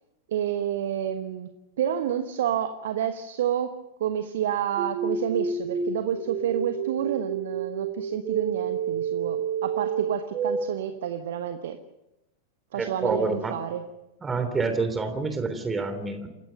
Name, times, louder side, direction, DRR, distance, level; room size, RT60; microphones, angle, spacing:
voice 1, 0.3-11.8 12.7-13.8, right 9 dB, 60° right, 9 dB, 1.2 m, -29 dB
sound 1, 4.8-10.7, right 6 dB, 35° right, 2.2 m, -29 dB
voice 2, 12.7-13.6 14.2-16.3, right 3 dB, 15° right, 8 dB, 3.3 m, -28 dB
28.0 x 15.5 x 6.8 m, 0.95 s
figure-of-eight pair, 90°, 0 cm